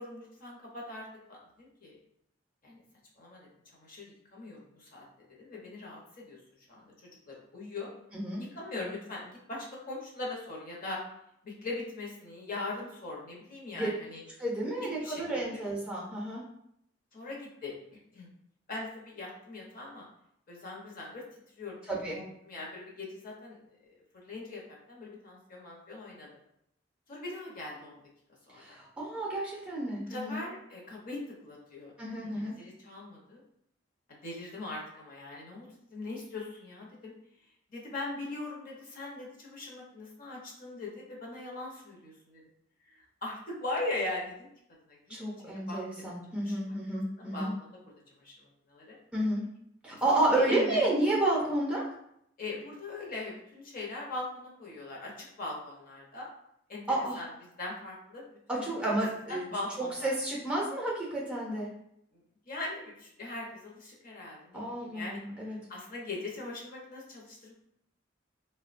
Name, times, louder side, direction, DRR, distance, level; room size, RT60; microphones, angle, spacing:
voice 1, 0.0-2.0 2.6-2.8 3.2-5.0 5.3-6.4 6.7-6.9 7.3-7.9 8.5-11.0 11.4-14.2 14.8-15.6 17.1-17.7 18.1-18.3 18.7-20.0 20.5-21.8 22.1-26.3 27.1-28.0 28.5-28.8 30.1-31.9 32.2-33.4 34.1-37.1 37.7-42.4 42.8-44.5 44.9-45.2 45.5-45.8 46.4-46.6 47.2-47.8 48.2-49.0 49.9-51.0 52.4-56.3 56.7-56.8 57.1-57.3 57.6-59.0 59.3-60.1 62.1-62.2 62.5-65.2 65.5-67.5, left 2 dB, 45° left, -3 dB, 0.7 m, -40 dB
voice 2, 8.1-8.4 13.7-13.9 14.4-16.4 21.9-22.2 28.5-30.5 32.0-32.5 45.1-47.5 49.1-49.4 49.8-51.8 56.9-57.2 58.5-59.5 59.8-61.7 64.5-65.6, right 1 dB, 5° right, -4 dB, 0.6 m, -31 dB
3.4 x 2.1 x 2.5 m, 0.75 s
head